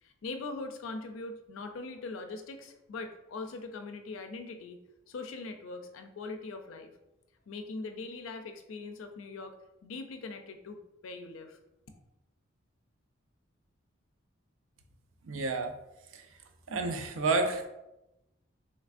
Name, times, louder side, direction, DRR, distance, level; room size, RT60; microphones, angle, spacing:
voice 1, 0.0-4.8 5.1-6.9 7.5-9.5 9.8-11.6, left 3 dB, 90° left, 6 dB, 0.4 m, -41 dB
voice 2, 15.2-15.7 16.1-16.2 16.7-17.7, right 3 dB, 85° right, 5 dB, 0.5 m, -30 dB
3.2 x 3.2 x 2.5 m, 0.93 s
head